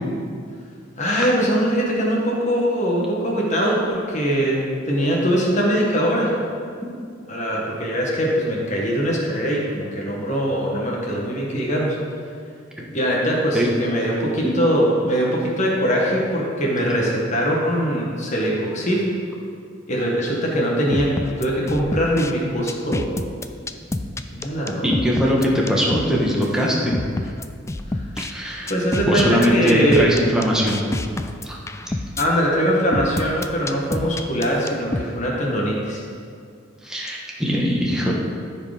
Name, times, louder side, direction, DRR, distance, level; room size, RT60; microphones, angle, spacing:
voice 1, 1.0-6.3 7.3-12.0 12.9-19.1 19.9-21.1 21.4-23.0 24.3-24.9 27.9-28.0 28.7-30.2 32.2-36.0, equal, 40° left, -3 dB, 1.5 m, -22 dB
sound 1, 20.9-22.3 22.7-26.1 26.4-26.5 26.9-28.3 28.7-32.3 32.9-35.0, left 2 dB, 15° left, 0.3 m, -27 dB
voice 2, 24.8-27.0 28.2-28.7 29.1-30.8 31.4-31.6 36.8-38.1, equal, 5° right, -3 dB, 1.4 m, -21 dB
14.0 x 5.0 x 5.1 m, 2.3 s
head